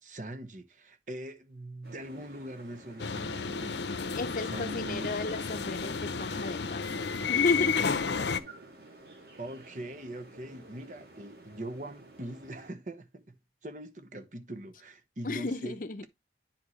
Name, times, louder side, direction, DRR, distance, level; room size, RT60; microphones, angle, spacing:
voice 1, 0.0-4.1 4.5-5.1 9.4-16.1, right 1 dB, 45° right, 1.1 m, -42 dB
sound 1, 1.8-12.7, right 2 dB, 60° right, 2.4 m, -52 dB
sound 2, 3.0-8.4, left 6 dB, 80° left, 0.7 m, -32 dB
voice 2, 4.1-8.1 15.2-16.1, left 3 dB, 50° left, 0.7 m, -33 dB
10.5 x 4.4 x 3.1 m
head